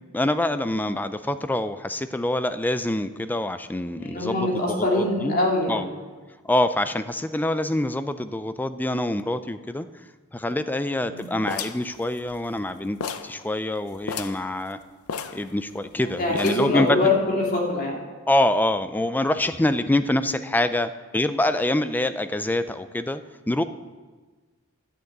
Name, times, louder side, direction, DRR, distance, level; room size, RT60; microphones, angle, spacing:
voice 1, 0.1-5.4 5.7-5.9 6.4-9.9 10.3-14.8 15.3-17.1 18.3-23.2 23.5-23.6, left 1 dB, 10° left, 11 dB, 0.4 m, -25 dB
voice 2, 4.0-5.9 11.0-11.3 16.0-18.0, left 2 dB, 45° left, -2 dB, 2.6 m, -24 dB
sound 1, 11.5-12.7 13.0-13.4 13.7-13.8 14.0-14.5 15.1-15.9 16.3-16.8, left 6 dB, 90° left, 0.6 m, -33 dB
11.5 x 6.6 x 8.6 m, 1.4 s
head